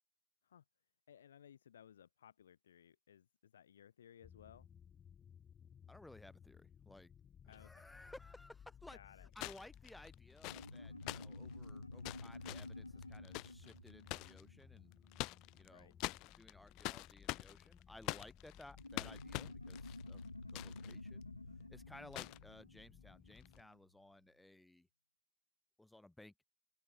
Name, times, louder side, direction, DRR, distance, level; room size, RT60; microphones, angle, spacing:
voice 1, 1.1-4.7 7.5-7.9 8.9-9.3 15.7-15.9, left 9 dB, 65° left, 3.7 m, -61 dB
sound 1, 4.2-23.6, left 8 dB, 25° left, 2.0 m, -61 dB
voice 2, 5.9-7.1 7.4-14.9 15.5-16.0 16.3-20.2 20.5-21.3 21.7-24.9 25.8-26.3, left 1 dB, 5° left, 3.6 m, -58 dB
sound 2, 7.5-7.6 9.3-14.4 14.9-15.7 16.0-21.0 21.2-21.3 22.1-22.4 23.4-23.6, left 24 dB, 40° left, 1.0 m, -45 dB
sound 3, 10.4-15.4 18.8-23.7, left 2 dB, 85° left, 1.2 m, -51 dB
open air
figure-of-eight pair, 90°, 0 cm